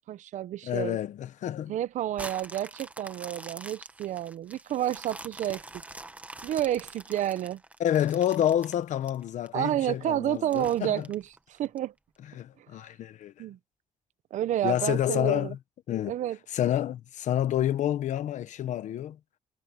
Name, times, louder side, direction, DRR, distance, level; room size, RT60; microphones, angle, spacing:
voice 1, 0.0-1.0 1.7-5.6 6.4-7.6 9.5-11.2 11.5-11.9 13.4-13.6 14.3-15.5 16.1-16.4, right 12 dB, 85° right, 0.6 m, -30 dB
voice 2, 0.6-1.7 7.8-11.1 12.3-13.3 14.6-15.6 15.9-16.1 16.5-19.2, left 11 dB, 85° left, 1.0 m, -28 dB
sound 1, 2.1-9.5 10.0-10.1 10.5-11.8 12.3-12.4, right 2 dB, 10° right, 1.2 m, -45 dB
wide cardioid pair, 155°, 12 cm